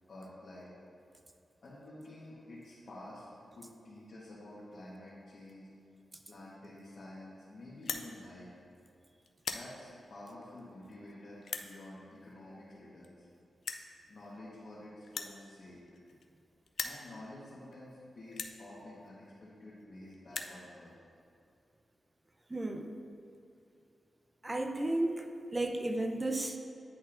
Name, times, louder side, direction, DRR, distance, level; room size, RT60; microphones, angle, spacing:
voice 1, 0.1-0.7 1.6-3.2 3.5-5.7 6.3-8.5 9.5-13.3 14.1-15.9 16.8-21.0, left 1 dB, 60° left, -8 dB, 1.3 m, -50 dB
sound 1, 7.7-8.1 8.7-8.9 9.3-9.7 10.4-10.5 11.4-11.7 12.7-12.8 13.0-13.1 13.6-13.9 15.0-16.4 16.7-17.0 17.7-17.8 18.3-18.6 19.5-19.6 19.8-19.9 20.1-20.6, left 5 dB, 75° left, 0.3 m, -39 dB
voice 2, 22.5-22.9 24.4-25.2 25.5-26.6, right 1 dB, 25° right, 6 dB, 0.5 m, -33 dB
9.9 x 4.1 x 2.5 m, 2.5 s
cardioid pair, 60°, 0 cm